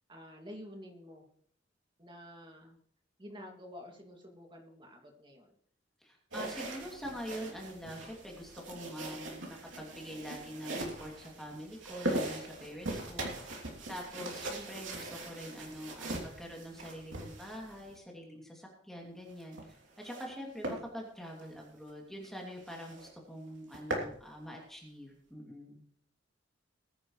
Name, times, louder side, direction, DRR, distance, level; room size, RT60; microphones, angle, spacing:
voice 1, 0.1-1.3 2.0-2.8 3.2-5.5, equal, 25° right, 1 dB, 2.5 m, -49 dB
voice 2, 6.0-13.6 13.9-25.8, equal, ahead, -1 dB, 2.7 m, -45 dB
sound 1, 6.3-18.0 19.3-20.3 20.6-20.8 21.3-21.5 21.9-22.0 22.2-22.3 22.7-23.1 23.5-24.1, right 1 dB, 80° right, 3.1 m, -40 dB
20.5 x 9.9 x 3.2 m, 0.62 s
head